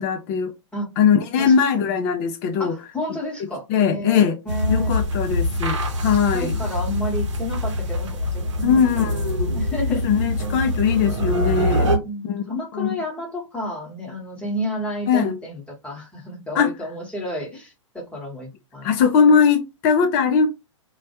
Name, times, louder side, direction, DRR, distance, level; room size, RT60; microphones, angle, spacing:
voice 1, 0.0-0.5 1.0-2.7 3.7-4.4 4.7-6.6 8.6-9.6 9.9-11.9 12.2-12.4 12.7-13.0 15.1-15.4 16.6-16.7 18.8-20.5, left 6 dB, 35° left, 0.4 m, -20 dB
voice 2, 1.4-2.0 2.6-5.0 6.1-8.9 9.6-10.0 11.8-18.9, equal, 5° left, 1.0 m, -31 dB
sound 1, 4.5-12.0, left 1 dB, 70° right, 0.7 m, -24 dB
2.2 x 2.1 x 2.8 m
hypercardioid pair, 115°, 16 cm